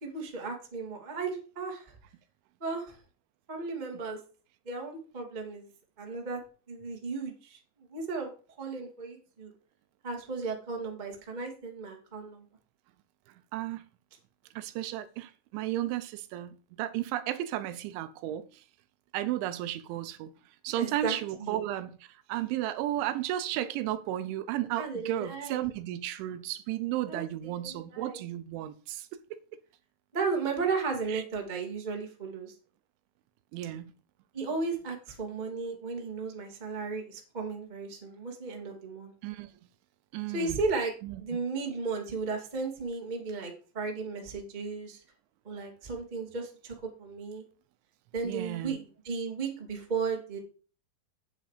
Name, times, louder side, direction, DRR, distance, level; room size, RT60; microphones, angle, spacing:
voice 1, 0.0-1.9 2.6-3.0 3.5-4.2 4.6-5.7 6.0-7.6 7.9-9.5 10.0-12.4 20.8-21.6 24.8-25.6 27.1-28.2 30.1-32.5 34.3-39.1 40.3-40.9 41.2-45.0 45.4-47.4 48.1-50.4, right 4 dB, 40° right, 0.6 m, -35 dB
voice 2, 13.5-13.8 14.6-18.5 19.1-20.3 20.6-21.9 22.3-29.6 31.1-31.2 33.5-33.9 39.2-39.5 40.1-40.6 41.0-41.2 48.2-48.8, right 13 dB, 80° right, 3.0 m, -34 dB
8.6 x 7.9 x 5.0 m
omnidirectional pair, 5.5 m